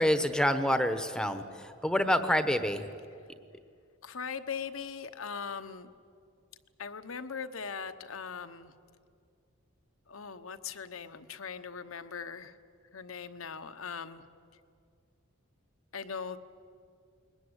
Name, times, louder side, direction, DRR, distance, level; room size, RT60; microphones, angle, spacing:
voice 1, 0.0-1.4 1.8-2.8, equal, 5° left, 9 dB, 1.0 m, -27 dB
voice 2, 4.0-5.9 6.8-8.7 10.1-12.6 12.9-14.2 15.9-16.4, left 6 dB, 75° left, 10 dB, 1.1 m, -40 dB
21.5 x 21.0 x 9.8 m, 2.3 s
head